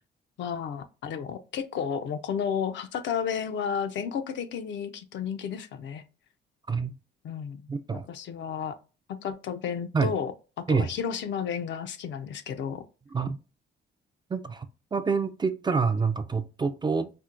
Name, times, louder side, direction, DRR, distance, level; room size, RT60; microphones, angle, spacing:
voice 1, 0.4-6.0 7.2-7.6 7.9-8.8 9.1-10.3 10.6-12.8, left 7 dB, 65° left, 0.5 m, -32 dB
voice 2, 7.7-8.1 9.9-10.1 10.7-10.9 13.1-13.4 14.3-14.7 14.9-17.1, right 5 dB, 20° right, 0.3 m, -27 dB
4.4 x 2.1 x 2.4 m
cardioid pair, 90°, 20 cm